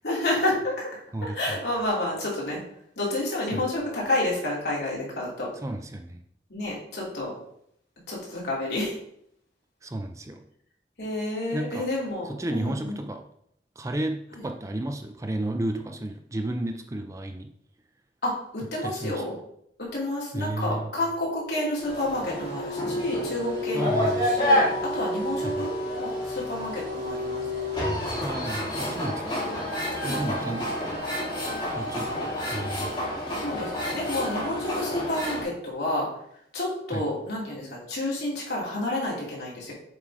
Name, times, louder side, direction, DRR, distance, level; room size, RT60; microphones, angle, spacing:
voice 1, 0.0-2.6 3.0-5.5 6.5-7.3 8.1-8.9 11.0-13.0 14.4-14.5 18.2-19.3 19.9-27.4 29.3-29.7 30.0-30.6 33.4-36.1 36.5-39.7, left 1 dB, 65° left, -5 dB, 2.8 m, -30 dB
voice 2, 1.1-1.6 3.5-3.7 5.6-6.2 9.8-10.4 11.5-11.9 12.2-13.2 13.8-17.5 18.8-19.4 20.3-20.9 23.7-24.3 25.4-25.7 28.2-29.4 29.7-31.0 31.7-32.2 32.5-32.9 36.9-37.1, right 1 dB, 15° right, 5 dB, 0.4 m, -32 dB
sound 1, 21.8-35.4, left 1 dB, 25° left, 2.4 m, -29 dB
7.4 x 3.8 x 4.7 m, 0.72 s
head